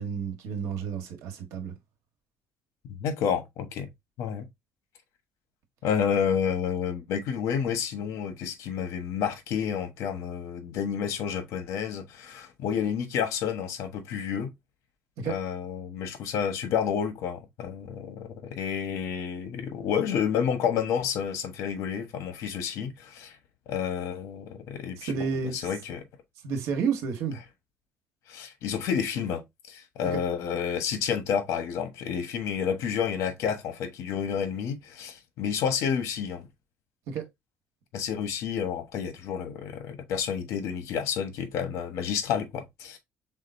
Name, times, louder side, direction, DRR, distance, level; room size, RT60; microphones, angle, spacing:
voice 1, 0.0-1.7 15.2-15.3 25.0-25.7 26.4-27.4 37.1-37.3, right 6 dB, 90° right, 1.5 m, -31 dB
voice 2, 3.0-3.9 4.2-4.4 5.8-14.5 15.2-23.4 23.7-26.0 28.3-29.4 29.7-36.5 37.9-43.0, left 7 dB, 80° left, 1.2 m, -30 dB
5.0 x 3.8 x 2.7 m
cardioid pair, 150°, 5 cm